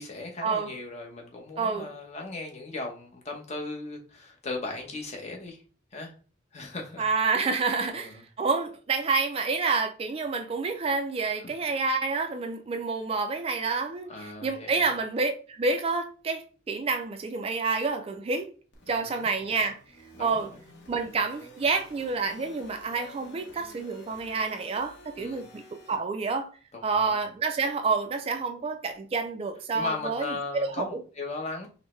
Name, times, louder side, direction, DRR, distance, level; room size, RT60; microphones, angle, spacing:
voice 1, 0.0-5.6 5.9-6.1 6.5-7.0 7.9-8.2 14.1-14.9 18.9-19.3 20.1-20.5 25.2-25.5 26.7-27.2 29.7-31.7, left 3 dB, 35° left, 0.8 m, -37 dB
voice 2, 1.6-1.9 7.0-18.5 18.9-19.8 20.2-20.5 20.9-26.5 26.8-30.3 30.5-30.7, right 4 dB, 30° right, 0.3 m, -28 dB
sound 1, 18.7-26.0, left 1 dB, 60° left, 0.9 m, -51 dB
5.3 x 2.1 x 3.1 m
head